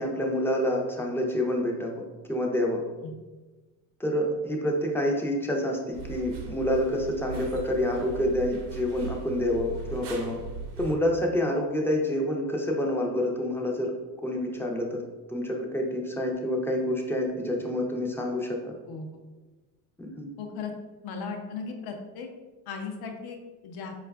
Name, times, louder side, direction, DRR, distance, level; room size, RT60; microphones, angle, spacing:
voice 1, 0.0-2.8 4.0-10.4 10.8-13.9 14.2-15.0 15.3-18.8 20.0-20.3, left 1 dB, 5° left, 0 dB, 0.4 m, -28 dB
sound 1, 5.9-11.0, right 4 dB, 60° right, 0.7 m, -39 dB
voice 2, 20.4-20.7 21.0-22.3 22.7-23.4 23.6-23.9, left 5 dB, 55° left, 3 dB, 0.7 m, -36 dB
4.3 x 2.4 x 2.3 m, 1.2 s
supercardioid pair, 80°, 47 cm